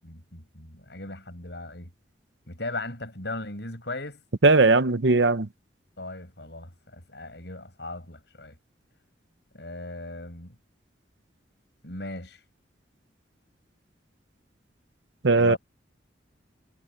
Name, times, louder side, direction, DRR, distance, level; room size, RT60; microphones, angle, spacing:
voice 1, 0.0-1.9 2.5-4.2 6.0-8.6 9.5-10.6 11.8-12.4 15.3-15.6, left 2 dB, 65° left, 7.6 m, -38 dB
voice 2, 4.4-5.5 15.2-15.6, right 3 dB, 70° right, 0.9 m, -18 dB
head